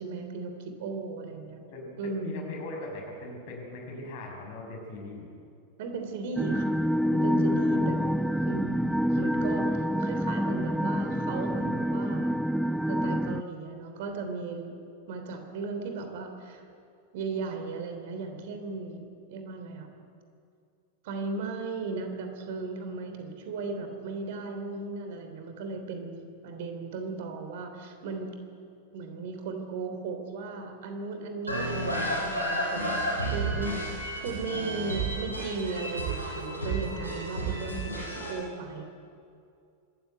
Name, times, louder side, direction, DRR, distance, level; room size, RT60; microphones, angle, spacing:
voice 1, 0.0-1.6 2.0-2.5 5.8-6.8 7.1-8.0 8.4-12.3 12.9-14.7 15.1-16.6 17.1-19.0 19.3-19.9 21.0-28.3 28.9-38.0 38.3-38.8, right 4 dB, 50° right, 5 dB, 3.3 m, -36 dB
voice 2, 1.7-5.3 7.5-8.1, left 2 dB, 50° left, 1 dB, 6.3 m, -40 dB
sound 1, 6.4-13.4, equal, ahead, 0.4 m, -27 dB
sound 2, 31.5-38.3, right 1 dB, 85° right, 7.5 m, -31 dB
25.0 x 14.0 x 9.2 m, 2.4 s
figure-of-eight pair, 90°, 0 cm